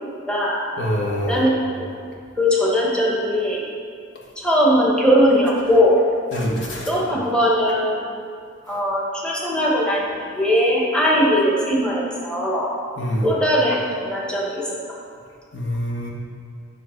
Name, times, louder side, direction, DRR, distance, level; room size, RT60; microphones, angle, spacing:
voice 1, 0.3-0.6 1.3-1.8 2.4-3.6 4.4-6.0 6.9-8.1 8.7-10.1 10.3-12.7 13.2-14.6, equal, 5° left, -5 dB, 1.3 m, -19 dB
voice 2, 0.8-1.5 6.3-6.9 13.0-13.3 15.5-16.1, equal, 70° left, -3 dB, 1.6 m, -25 dB
10.5 x 6.5 x 4.5 m, 2.3 s
head